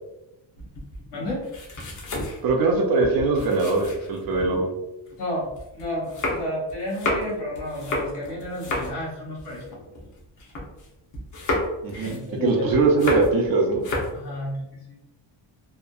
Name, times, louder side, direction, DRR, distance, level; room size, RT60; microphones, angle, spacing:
sound 1, 0.6-4.6 5.1-10.9 11.1-13.5 13.7-14.2, left 1 dB, 40° left, 0.6 m, -31 dB
voice 1, 1.1-1.5 5.2-5.5 5.7-9.6 10.4-10.5 11.9-12.7 14.1-15.0, left 1 dB, 60° left, -4 dB, 1.2 m, -32 dB
voice 2, 2.4-4.7 11.8-13.9, right 3 dB, 50° right, 1 dB, 0.5 m, -21 dB
2.7 x 2.2 x 2.2 m, 0.91 s
cardioid pair, 165°, 47 cm